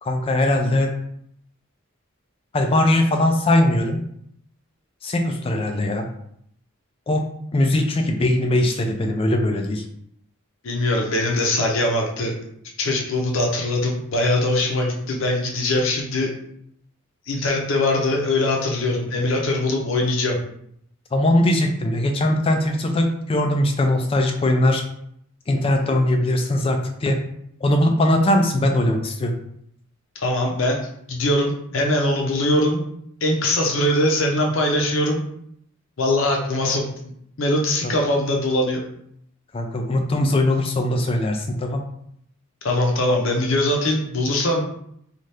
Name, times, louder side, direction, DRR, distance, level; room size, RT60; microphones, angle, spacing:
voice 1, 0.0-0.9 2.5-4.0 5.0-6.1 7.1-7.2 7.5-9.8 21.1-24.8 25.5-27.2 27.6-29.3 37.8-37.9 39.5-41.8, left 1 dB, 25° left, 4 dB, 0.3 m, -20 dB
voice 2, 10.6-12.3 12.8-16.3 17.3-20.4 30.2-32.9 33.2-35.3 36.0-36.9 37.4-38.8 42.6-44.6, left 1 dB, 65° left, 0 dB, 0.6 m, -21 dB
2.7 x 2.4 x 3.3 m, 0.71 s
head